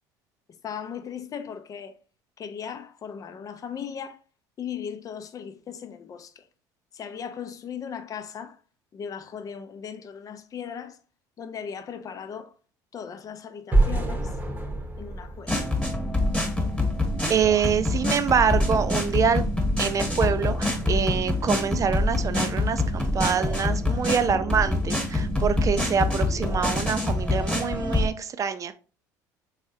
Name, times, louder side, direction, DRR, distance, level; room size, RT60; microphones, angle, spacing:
voice 1, 0.5-2.0 2.4-4.2 4.6-6.5 6.9-8.6 8.9-11.0 11.4-12.5 12.9-14.3 15.0-15.7, left 7 dB, 40° left, 0.6 m, -37 dB
sound 1, 13.7-16.7, right 2 dB, 15° right, 0.9 m, -26 dB
sound 2, 15.5-28.1, left 2 dB, 10° left, 1.4 m, -25 dB
voice 2, 17.3-19.4 19.8-28.7, right 7 dB, 35° right, 0.4 m, -25 dB
3.6 x 3.3 x 2.7 m
supercardioid pair, 85°, 9 cm